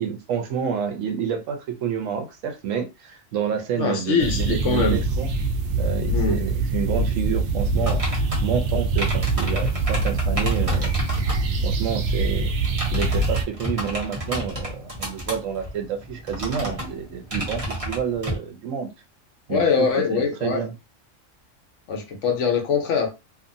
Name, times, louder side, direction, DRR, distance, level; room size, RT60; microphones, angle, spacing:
voice 1, 0.0-5.3 5.8-10.9 11.6-12.5 12.9-18.9 19.5-20.7, right 7 dB, 80° right, 1.1 m, -29 dB
voice 2, 3.8-5.0 6.1-6.4 19.5-20.6 21.9-23.1, left 5 dB, 70° left, 1.0 m, -23 dB
sound 1, 4.2-13.4, right 3 dB, 65° right, 0.6 m, -24 dB
mechanical keyboard typing, 7.8-11.4 12.5-18.4, right 1 dB, 30° right, 1.0 m, -31 dB
2.8 x 2.4 x 2.6 m
omnidirectional pair, 1.3 m